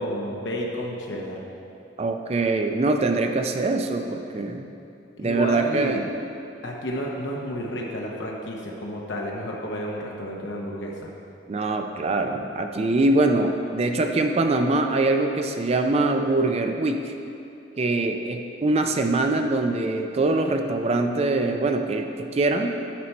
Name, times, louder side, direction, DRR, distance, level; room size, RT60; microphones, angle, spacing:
voice 1, 0.0-1.4 5.2-6.1 6.6-11.1, equal, 75° left, -2 dB, 0.8 m, -31 dB
voice 2, 2.0-4.7 5.2-6.1 11.5-17.1 17.8-22.8, right 2 dB, 35° right, 5 dB, 0.4 m, -23 dB
10.0 x 4.5 x 4.2 m, 2.7 s
head